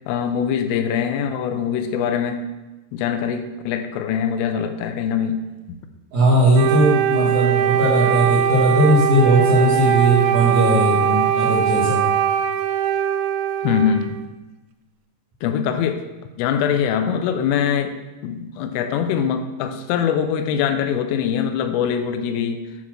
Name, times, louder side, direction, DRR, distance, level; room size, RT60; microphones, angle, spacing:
voice 1, 0.1-2.4 2.9-5.8 13.6-14.2 15.4-16.0 16.4-17.9 18.2-22.6, left 8 dB, 90° left, 8 dB, 3.2 m, -23 dB
voice 2, 6.1-12.0, right 1 dB, 60° right, -7 dB, 2.1 m, -18 dB
Wind instrument woodwind instrument, 6.5-14.3, right 9 dB, 90° right, 3.3 m, -20 dB
9.7 x 4.3 x 6.0 m, 1.1 s
omnidirectional pair, 5.7 m